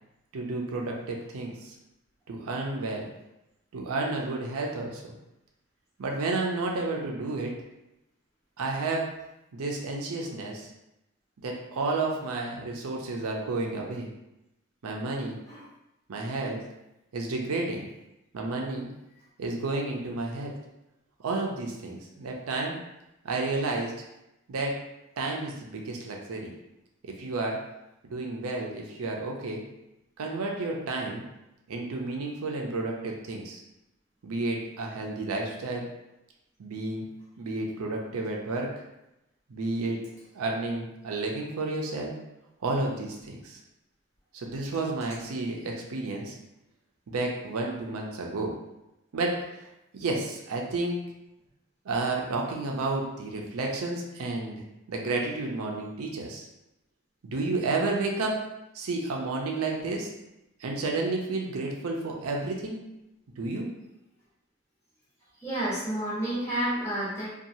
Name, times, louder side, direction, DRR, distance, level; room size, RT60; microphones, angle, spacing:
voice 1, 0.3-1.8 2.3-3.1 3.7-5.1 6.0-7.5 8.6-9.1 9.5-10.7 11.4-14.1 14.8-15.4 16.1-16.6 17.1-17.9 18.3-18.9 19.4-20.5 21.2-22.8 23.2-23.9 24.5-24.7 25.2-26.5 27.0-27.6 28.1-29.6 30.2-31.2 31.7-33.6 34.2-35.9 36.6-37.1 37.4-38.7 39.5-40.0 40.3-42.1 42.6-43.6 44.3-46.3 47.1-48.5 49.1-49.6 49.9-51.0 51.8-56.5 57.2-58.4 58.7-60.1 60.6-62.8 63.4-63.7, right 3 dB, 85° right, 0 dB, 0.5 m, -31 dB
voice 2, 65.4-67.2, right 1 dB, 10° left, -10 dB, 1.1 m, -30 dB
2.8 x 2.3 x 2.6 m, 0.91 s
head